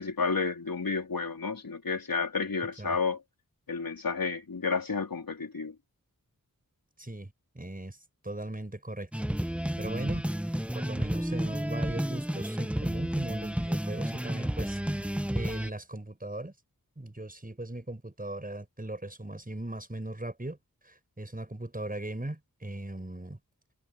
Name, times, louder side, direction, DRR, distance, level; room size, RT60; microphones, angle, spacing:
voice 1, 0.0-3.2 3.7-5.7, left 4 dB, 80° left, 3.6 m, -31 dB
voice 2, 7.0-8.0 8.2-9.1 9.8-10.2 10.7-16.5 17.0-20.6 20.8-23.4, right 1 dB, 25° right, 5.9 m, -38 dB
sound 1, 9.1-15.7, equal, 5° right, 0.8 m, -31 dB
wide cardioid pair, 70°, 35 cm